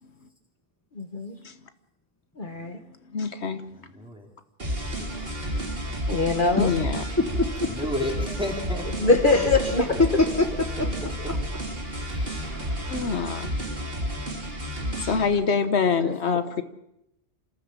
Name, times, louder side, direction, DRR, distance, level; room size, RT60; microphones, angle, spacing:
voice 1, 1.0-1.4 2.4-2.8 6.1-6.7 9.0-9.9 16.0-16.2, left 3 dB, 50° left, 5 dB, 1.6 m, -22 dB
voice 2, 3.1-3.6 5.0-5.1 6.6-7.0 12.9-13.5 15.0-16.6, left 5 dB, 80° left, 9 dB, 1.4 m, -25 dB
voice 3, 3.8-4.3 4.8-5.3 7.7-9.1 9.6-9.7 12.1-12.6, left 1 dB, 5° right, -1 dB, 4.5 m, -33 dB
sound 1, 4.6-15.3, equal, 60° right, 3.2 m, -31 dB
sound 2, 4.8-13.2, right 2 dB, 85° right, 7.1 m, -40 dB
voice 4, 7.2-7.7 9.3-9.5 10.0-10.7 12.5-13.3, left 2 dB, 15° left, 3 dB, 1.2 m, -25 dB
27.5 x 14.5 x 7.4 m, 0.82 s
omnidirectional pair, 1.1 m